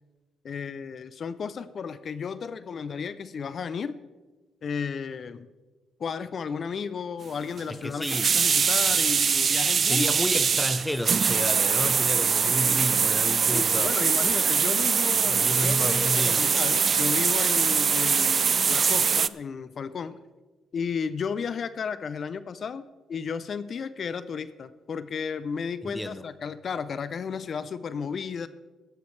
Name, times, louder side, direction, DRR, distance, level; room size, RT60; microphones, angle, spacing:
voice 1, 0.4-4.0 4.6-5.5 6.0-10.1 12.4-12.8 13.5-20.2 20.7-22.8 23.1-28.5, left 6 dB, 50° left, 0.5 m, -33 dB
sound 1, 7.6-7.7 8.0-19.3, right 6 dB, 45° right, 0.4 m, -23 dB
voice 2, 7.7-8.4 9.9-13.9 15.3-16.5 25.8-26.2, equal, 5° left, 0.7 m, -31 dB
15.5 x 13.0 x 3.2 m
cardioid pair, 90°, 0 cm